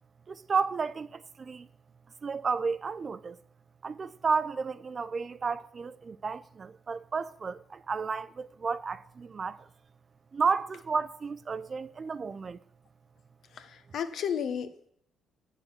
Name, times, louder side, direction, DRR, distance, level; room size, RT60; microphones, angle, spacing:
voice 1, 0.3-1.7 2.2-3.4 3.8-9.7 10.3-12.6, right 5 dB, 40° right, 0.5 m, -32 dB
voice 2, 13.6-14.9, left 8 dB, 65° left, 0.9 m, -33 dB
7.7 x 6.6 x 7.4 m
cardioid pair, 90°, 0 cm